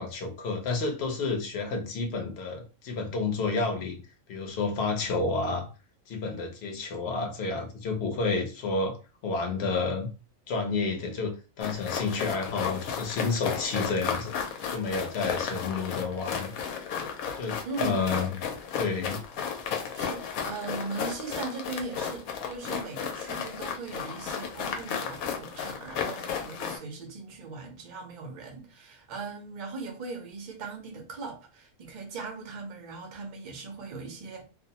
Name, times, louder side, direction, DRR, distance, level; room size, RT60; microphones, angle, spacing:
voice 1, 0.0-4.0 4.3-5.7 6.1-9.0 9.2-10.1 10.5-14.4 14.7-16.5 17.3-18.3 18.8-19.2, left 4 dB, 55° left, 0.8 m, -30 dB
sound 1, 11.6-26.8, left 7 dB, 80° left, 1.0 m, -34 dB
voice 2, 17.6-18.2 19.9-34.4, right 4 dB, 55° right, 0.5 m, -39 dB
2.5 x 2.0 x 2.7 m
omnidirectional pair, 1.5 m